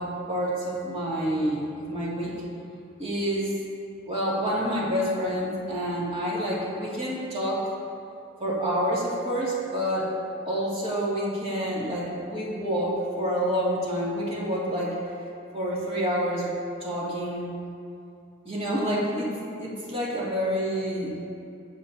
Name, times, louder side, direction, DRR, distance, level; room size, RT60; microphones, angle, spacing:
voice 1, 0.0-2.3 3.0-3.5 4.1-7.6 8.4-10.1 10.5-15.0 15.5-16.5 16.8-17.6 18.5-19.3 19.6-21.2, equal, 30° right, -6 dB, 2.4 m, -28 dB
21.5 x 7.7 x 2.8 m, 2.5 s
head